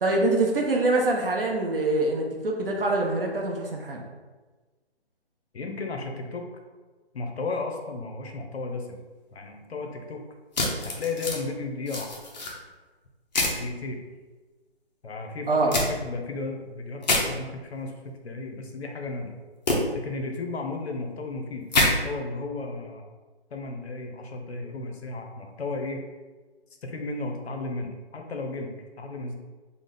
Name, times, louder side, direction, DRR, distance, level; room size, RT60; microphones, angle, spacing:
voice 1, 0.0-4.0 15.5-15.7, right 2 dB, 60° right, 0 dB, 0.6 m, -24 dB
voice 2, 5.5-6.4 7.1-9.0 9.3-10.2 10.8-12.1 13.4-14.0 15.0-19.3 19.9-23.1 23.5-26.0 26.8-29.3, left 3 dB, 75° left, 3 dB, 0.7 m, -34 dB
sound 1, 10.5-11.4 11.9-12.5 13.3-13.6 15.7-15.9 17.0-17.2 19.7-19.8 21.7-21.9, left 2 dB, 40° left, 0.7 m, -25 dB
3.4 x 2.0 x 3.6 m, 1.3 s
hypercardioid pair, 165°, 32 cm